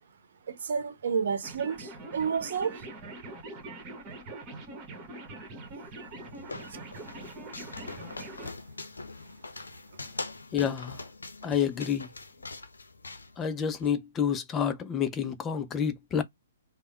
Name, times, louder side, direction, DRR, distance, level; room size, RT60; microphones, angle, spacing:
voice 1, 0.5-2.9 6.5-6.8, right 6 dB, 65° right, 0.8 m, -31 dB
sound 1, 1.4-8.5, right 2 dB, 30° right, 1.2 m, -43 dB
sound 2, 5.8-13.9, left 3 dB, 85° left, 0.6 m, -43 dB
voice 2, 10.5-11.0 11.4-12.1 13.4-16.2, left 8 dB, 20° left, 0.5 m, -29 dB
3.5 x 2.2 x 4.2 m
hypercardioid pair, 125°, 0 cm